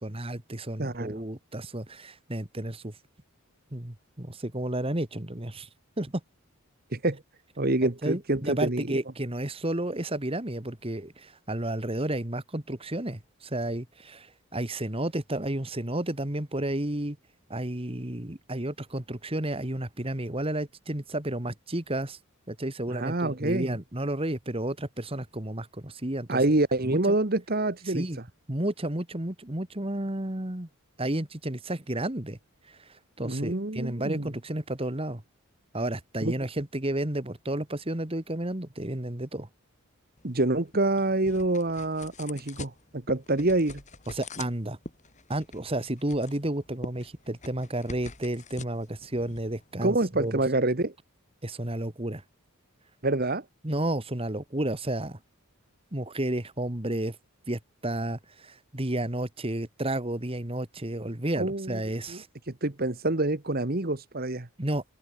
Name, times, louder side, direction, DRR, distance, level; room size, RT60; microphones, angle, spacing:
voice 1, 0.0-3.0 3.7-5.7 6.0-6.2 7.8-17.2 17.5-22.2 22.5-26.4 26.8-27.2 27.9-28.2 28.5-30.7 31.0-32.4 32.7-35.2 35.7-39.5 44.1-44.8 45.3-50.4 51.4-52.2 53.6-55.2 55.9-57.2 57.5-62.3 64.6-64.8, right 1 dB, 25° right, 1.8 m, -32 dB
voice 2, 0.8-1.2 6.9-7.2 7.6-9.0 22.9-23.8 26.3-28.0 33.2-34.3 36.2-36.3 40.2-43.8 49.8-50.9 53.0-53.4 61.4-61.8 62.1-62.2 62.6-64.5, right 2 dB, 40° right, 1.5 m, -27 dB
sound 1, 40.2-50.4, left 2 dB, 35° left, 6.9 m, -45 dB
head